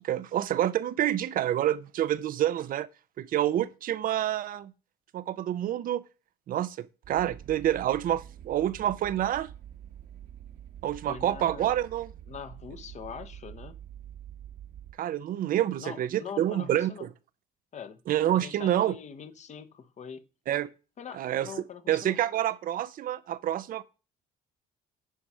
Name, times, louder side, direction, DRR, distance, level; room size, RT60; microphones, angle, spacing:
voice 1, 0.0-2.9 3.2-4.7 5.1-6.0 6.5-9.5 10.8-12.1 15.0-17.1 18.1-19.0 20.5-20.7 21.1-21.5 21.9-23.8, right 12 dB, 55° right, 0.6 m, -28 dB
sound 1, 7.0-14.9, right 10 dB, 70° right, 1.5 m, -46 dB
voice 2, 11.1-11.7 12.3-13.7 15.8-17.1 17.7-18.0 18.3-20.2 21.0-22.2, left 7 dB, 45° left, 1.0 m, -43 dB
10.0 x 4.7 x 5.5 m
cardioid pair, 110°, 17 cm